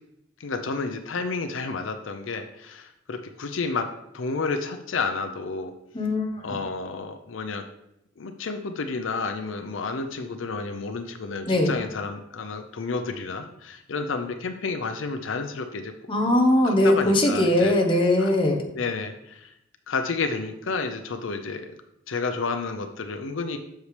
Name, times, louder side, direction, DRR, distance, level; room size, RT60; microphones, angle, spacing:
voice 1, 0.4-3.9 4.1-5.7 6.4-7.6 8.2-15.9 16.6-17.7 18.2-18.3 18.7-19.5 19.9-21.7 22.1-23.6, left 4 dB, 75° left, 7 dB, 0.6 m, -30 dB
voice 2, 5.9-6.4 11.5-11.7 16.1-18.6, left 1 dB, 25° left, 2 dB, 1.0 m, -20 dB
8.1 x 6.6 x 3.3 m, 0.83 s
head